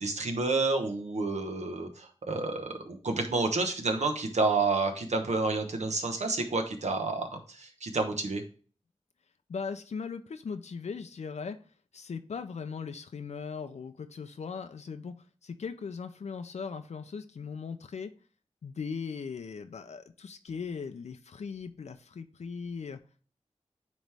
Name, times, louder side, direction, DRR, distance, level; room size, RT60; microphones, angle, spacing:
voice 1, 0.0-8.4, right 3 dB, 85° right, 4 dB, 1.1 m, -29 dB
voice 2, 9.5-11.6 11.9-15.2 15.4-18.1 18.6-23.0, left 5 dB, 85° left, 8 dB, 0.4 m, -39 dB
9.1 x 3.1 x 3.3 m, 0.41 s
wide cardioid pair, 55°, 11 cm